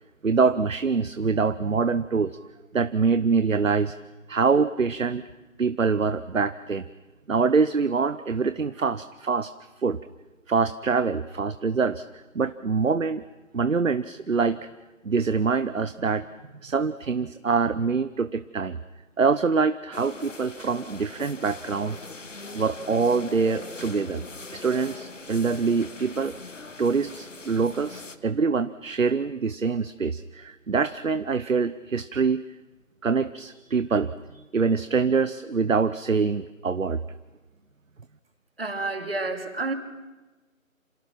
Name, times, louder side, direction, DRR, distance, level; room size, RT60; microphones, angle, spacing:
voice 1, 0.2-2.4 2.7-4.0 4.3-5.2 5.6-6.8 7.3-9.5 9.8-10.0 10.5-13.2 13.5-14.6 15.0-16.2 16.6-18.8 19.2-22.0 22.5-24.2 24.5-26.3 26.8-32.4 33.0-34.1 34.5-37.0, right 5 dB, 70° right, 13 dB, 1.0 m, -24 dB
sound 1, 19.9-28.2, left 3 dB, 65° left, 1.6 m, -41 dB
voice 2, 38.6-39.7, right 3 dB, 45° right, 6 dB, 2.6 m, -29 dB
29.0 x 27.5 x 6.0 m, 1.1 s
figure-of-eight pair, 170°, 41 cm